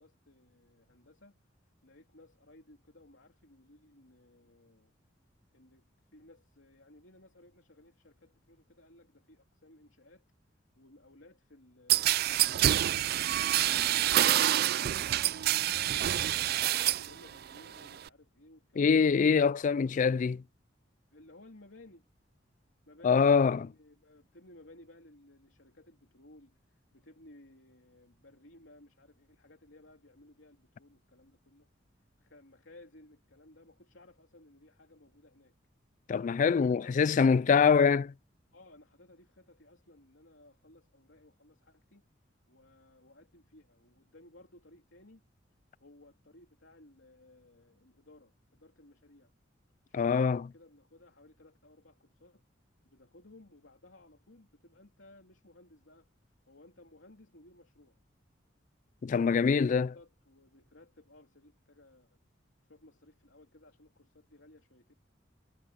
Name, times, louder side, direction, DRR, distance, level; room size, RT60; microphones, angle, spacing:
voice 1, 0.0-1.4 1.8-4.9 5.5-10.3 10.7-15.1 15.4-19.4 21.1-22.1 22.8-31.7 32.2-35.6 36.6-37.7 38.5-42.1 42.5-45.3 45.8-49.3 49.9-52.5 52.8-56.1 56.5-58.0 59.4-62.2 62.7-64.9, left 1 dB, 90° left, 3.0 m, -58 dB
sound 1, 11.9-17.1 17.5-18.1, right 13 dB, 55° right, 0.4 m, -27 dB
voice 2, 18.8-20.4 23.0-23.6 36.1-38.1 49.9-50.4 59.0-59.9, left 6 dB, 45° left, 0.3 m, -24 dB
head